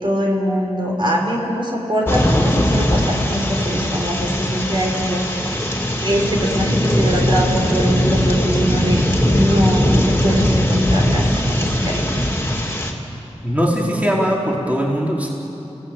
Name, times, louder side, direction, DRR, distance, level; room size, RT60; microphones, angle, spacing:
voice 1, 0.0-5.6 6.0-12.2, equal, 45° right, -1 dB, 4.3 m, -22 dB
sound 1, 2.0-12.9, left 1 dB, 20° left, 3.3 m, -19 dB
voice 2, 13.4-15.3, equal, 15° right, -3 dB, 4.4 m, -20 dB
30.0 x 17.0 x 9.1 m, 3.0 s
wide cardioid pair, 60°, 11 cm